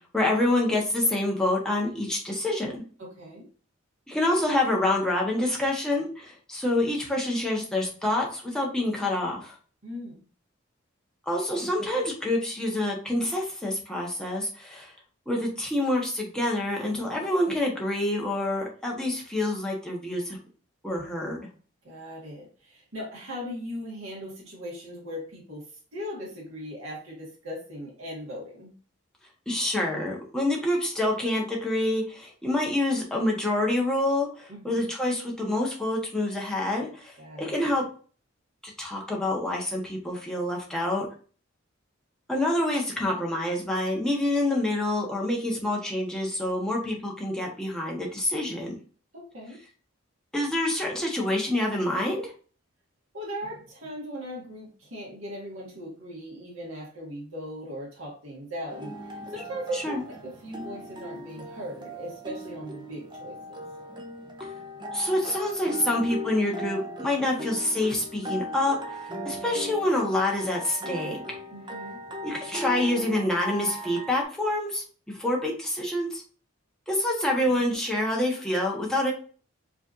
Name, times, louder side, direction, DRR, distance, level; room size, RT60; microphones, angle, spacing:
voice 1, 0.1-2.8 4.1-9.5 11.3-14.9 15.3-20.4 20.8-21.4 29.5-37.1 37.4-37.9 38.6-41.1 42.3-48.7 50.3-52.3 59.7-60.0 64.9-69.0 69.2-71.4 72.2-74.8 75.2-76.2 76.9-79.1, left 1 dB, 5° left, -2 dB, 1.1 m, -27 dB
voice 2, 3.0-3.5 9.8-10.2 21.0-21.1 21.8-25.7 25.9-28.8 34.5-34.9 37.2-37.6 49.1-49.6 53.1-63.6 71.5-72.0 77.5-77.6, equal, 85° right, -5 dB, 1.9 m, -39 dB
sound 1, 58.7-74.2, equal, 20° right, 0.6 m, -38 dB
5.0 x 3.4 x 2.6 m, 0.39 s
head